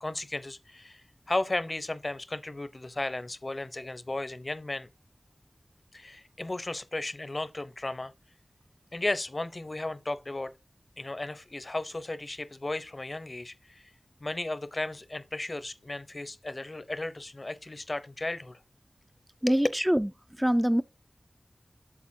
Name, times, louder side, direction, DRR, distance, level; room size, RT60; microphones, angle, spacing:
voice 1, 0.0-4.9 5.9-8.1 8.9-10.5 11.0-13.9 14.2-18.6 19.5-19.6, left 2 dB, 45° left, 0.7 m, -35 dB
voice 2, 19.4-20.1 20.4-20.8, equal, 10° right, 0.4 m, -24 dB
8.5 x 6.9 x 2.7 m
wide cardioid pair, 60°, 0 cm